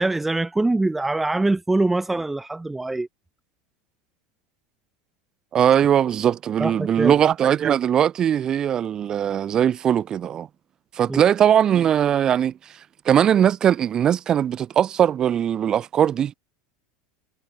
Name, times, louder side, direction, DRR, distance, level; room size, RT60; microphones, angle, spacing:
voice 1, 0.0-3.1 6.6-7.1 11.1-11.2, right 2 dB, 10° right, 4.0 m, -23 dB
voice 2, 5.5-10.5 10.9-12.5 13.0-16.3, right 9 dB, 35° right, 3.0 m, -20 dB
hypercardioid pair, 100°, 2 cm